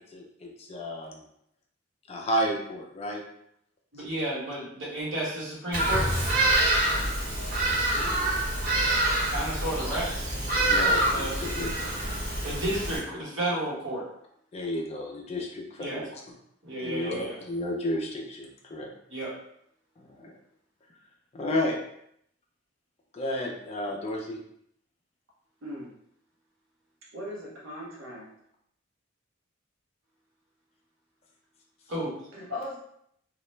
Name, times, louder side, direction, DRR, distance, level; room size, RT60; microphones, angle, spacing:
voice 1, 0.1-1.2 2.1-3.2 4.0-4.1 7.9-8.4 10.7-11.9 14.5-16.2 16.8-18.9 20.0-20.3 21.3-21.8 23.1-24.4, equal, 30° left, 0 dB, 0.4 m, -32 dB
voice 2, 3.9-6.1 9.3-10.1 10.7-11.3 12.4-14.0 15.8-16.0 16.6-17.4 19.1-19.3 31.9-32.1, right 1 dB, 70° right, -6 dB, 1.2 m, -32 dB
Bird vocalization bird call bird song, 5.7-13.0, right 1 dB, 45° right, 0.8 m, -26 dB
voice 3, 27.1-28.3 32.3-32.8, left 1 dB, 90° right, -4 dB, 0.7 m, -38 dB
2.3 x 2.0 x 3.1 m, 0.71 s
head